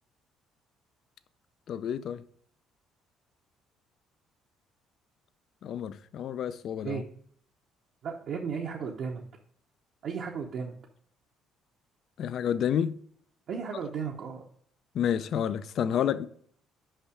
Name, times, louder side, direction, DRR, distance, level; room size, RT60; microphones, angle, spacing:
voice 1, 1.7-2.2 5.6-7.0 12.2-12.9 14.9-16.3, left 9 dB, 55° left, 0.4 m, -29 dB
voice 2, 8.0-9.2 10.0-10.7 13.5-14.4, right 6 dB, 55° right, 0.8 m, -34 dB
5.6 x 5.4 x 4.9 m
cardioid pair, 135°, 0 cm